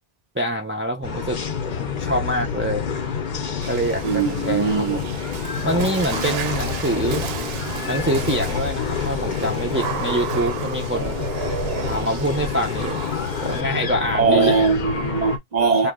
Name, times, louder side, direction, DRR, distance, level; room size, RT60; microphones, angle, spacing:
voice 1, 0.3-1.4 1.8-2.9 3.7-5.1 5.6-7.3 7.9-11.2 11.9-13.0 13.4-14.6 15.8-15.9, right 1 dB, 15° right, 0.5 m, -25 dB
sound 1, 1.0-15.4, left 6 dB, 50° left, 0.8 m, -28 dB
Water / Splash splatter, 3.6-13.6, right 8 dB, 75° right, 0.8 m, -33 dB
voice 2, 4.0-5.0 14.2-15.9, right 4 dB, 45° right, 0.7 m, -20 dB
2.9 x 2.9 x 3.6 m
omnidirectional pair, 1.0 m